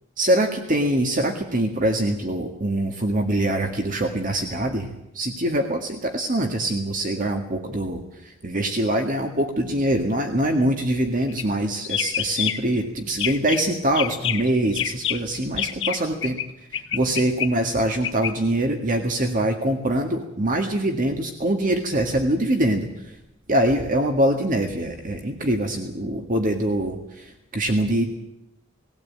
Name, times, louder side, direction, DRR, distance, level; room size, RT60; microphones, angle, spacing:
voice 1, 0.2-4.9 5.1-16.4 16.7-23.1 23.5-28.1, right 1 dB, 45° right, 4 dB, 1.8 m, -24 dB
sound 1, 11.3-11.6 11.8-12.8 13.1-13.6 14.0-16.5 16.7-18.3, left 10 dB, 65° left, 1.3 m, -28 dB
20.0 x 16.5 x 8.7 m, 0.84 s
head